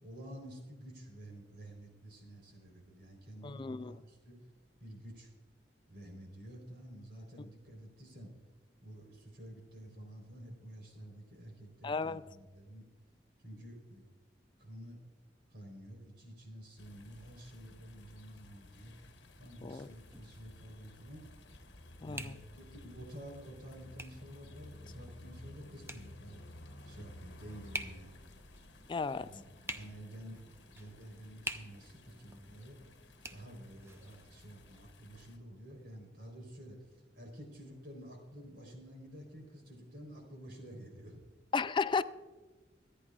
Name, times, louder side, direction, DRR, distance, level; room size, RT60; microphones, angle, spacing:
voice 1, 0.0-4.4 4.8-5.3 5.9-8.3 8.8-12.8 13.4-14.0 14.6-15.0 15.5-19.0 19.4-21.2 22.0-26.4 26.8-28.1 29.2-30.4 30.7-32.8 33.3-41.2, right 1 dB, 65° right, 3.8 m, -50 dB
voice 2, 3.4-4.0 11.8-12.2 19.6-19.9 22.0-22.3 28.9-29.3 41.5-42.0, left 5 dB, 30° left, 0.3 m, -34 dB
sound 1, 16.8-35.4, left 1 dB, 80° left, 1.1 m, -55 dB
sound 2, 19.7-34.9, right 2 dB, 15° right, 0.6 m, -50 dB
24.5 x 9.9 x 2.4 m
head